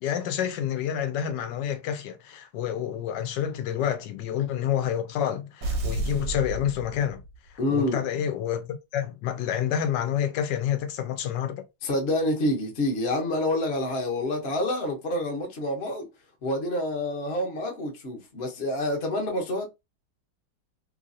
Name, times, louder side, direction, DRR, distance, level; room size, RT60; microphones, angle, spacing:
voice 1, 0.0-7.2 7.7-8.7 8.9-11.6, left 9 dB, 70° left, 1.2 m, -28 dB
sound 1, 5.6-7.5, right 2 dB, 60° right, 1.0 m, -31 dB
voice 2, 7.6-8.0 11.8-16.1 16.4-19.7, left 1 dB, 40° left, 1.0 m, -27 dB
3.2 x 2.6 x 2.6 m
omnidirectional pair, 2.1 m